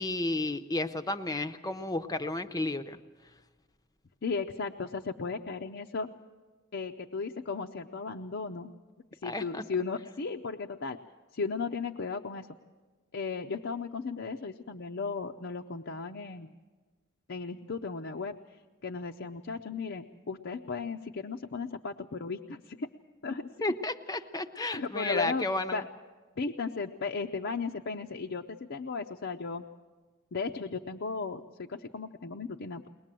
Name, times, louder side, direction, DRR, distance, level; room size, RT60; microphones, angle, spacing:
voice 1, 0.0-3.0 9.2-9.6 23.6-25.8, left 2 dB, 20° left, 9 dB, 0.7 m, -32 dB
voice 2, 4.2-6.1 6.7-8.7 9.1-11.0 11.3-12.5 13.1-16.5 17.3-22.9 23.2-23.5 24.7-25.9 26.4-29.6 30.3-32.9, left 4 dB, 55° left, 2 dB, 0.6 m, -35 dB
22.0 x 20.0 x 7.6 m, 1.3 s
head